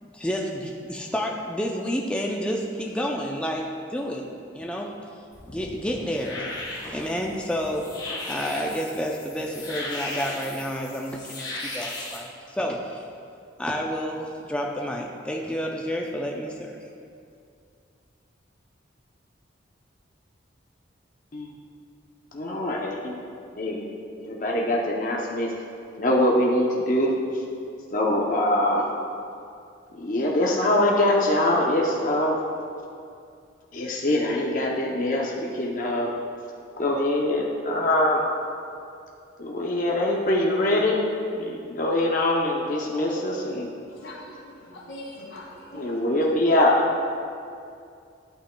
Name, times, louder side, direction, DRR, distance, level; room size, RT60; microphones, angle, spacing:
voice 1, 0.0-4.3 4.5-4.9 5.5-6.5 6.9-7.9 8.3-13.0 13.6-16.8, equal, 5° left, 0 dB, 0.4 m, -30 dB
sound 1, 5.3-12.2, left 2 dB, 20° left, 1.4 m, -37 dB
voice 2, 22.3-23.2 23.6-23.9 24.2-25.5 26.0-27.1 27.9-28.8 30.0-32.4 33.7-36.1 36.8-38.2 39.4-41.0 41.3-43.7 45.7-46.8, left 1 dB, 45° left, -3 dB, 0.7 m, -23 dB
voice 3, 44.0-45.5 45.7-45.9, left 1 dB, 90° left, -3 dB, 1.9 m, -41 dB
11.0 x 8.5 x 2.2 m, 2.4 s
head